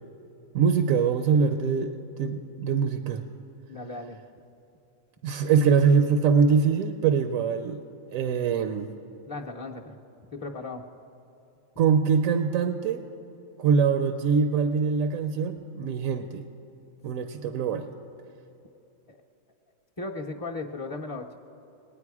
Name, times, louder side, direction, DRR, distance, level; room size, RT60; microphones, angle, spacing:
voice 1, 0.5-3.2 5.2-7.8 8.1-8.9 11.8-13.0 13.6-16.4 17.0-17.9, right 6 dB, 90° right, 8 dB, 1.0 m, -23 dB
voice 2, 3.7-4.2 9.3-10.0 10.3-10.8 19.1-19.2 20.0-21.4, left 3 dB, 30° left, -3 dB, 0.4 m, -36 dB
21.0 x 9.2 x 4.8 m, 2.8 s
omnidirectional pair, 1.4 m